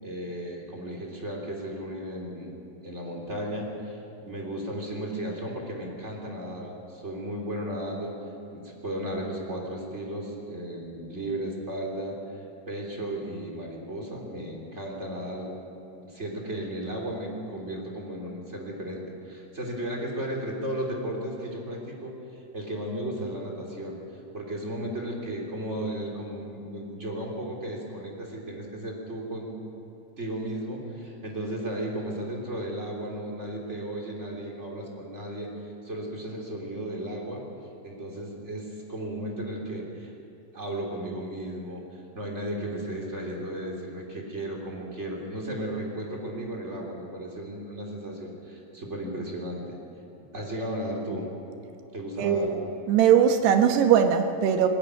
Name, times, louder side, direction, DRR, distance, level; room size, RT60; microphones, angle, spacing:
voice 1, 0.0-4.0 4.3-8.2 8.5-12.2 12.7-15.5 15.9-22.1 22.5-24.0 24.3-29.5 30.2-35.5 35.8-37.4 37.8-40.1 40.5-49.8 50.3-51.3 51.9-52.5, right 1 dB, 20° right, -1 dB, 2.8 m, -35 dB
voice 2, 52.2-52.5 52.9-54.7, right 8 dB, 70° right, 6 dB, 2.8 m, -20 dB
20.0 x 19.0 x 9.6 m, 2.7 s
omnidirectional pair, 5.4 m